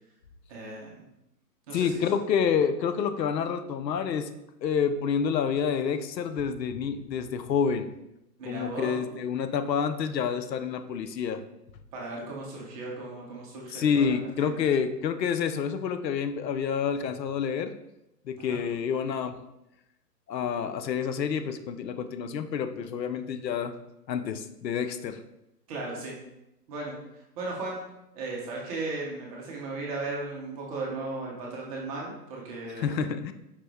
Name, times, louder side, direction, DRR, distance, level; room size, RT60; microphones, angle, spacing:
voice 1, 0.5-1.0 1.7-2.0 8.4-9.0 11.9-14.5 18.4-18.6 25.7-26.2 26.7-27.0 27.3-27.8 28.1-33.1, right 3 dB, 20° right, -3 dB, 0.8 m, -36 dB
voice 2, 1.7-4.3 4.6-7.9 8.4-11.4 13.7-17.7 18.3-19.4 20.3-23.7 24.1-25.2 32.8-33.3, left 7 dB, 85° left, 10 dB, 0.6 m, -28 dB
5.0 x 2.6 x 3.4 m, 0.88 s
hypercardioid pair, 140°, 49 cm